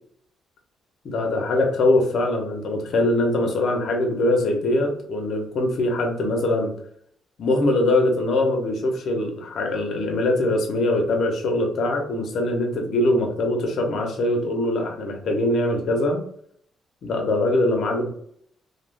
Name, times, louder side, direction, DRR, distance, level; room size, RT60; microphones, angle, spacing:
voice 1, 1.0-6.7 7.4-16.2 17.0-18.1, left 1 dB, 65° left, 2 dB, 0.8 m, -22 dB
2.4 x 2.3 x 3.3 m, 0.66 s
cardioid pair, 90°, 0 cm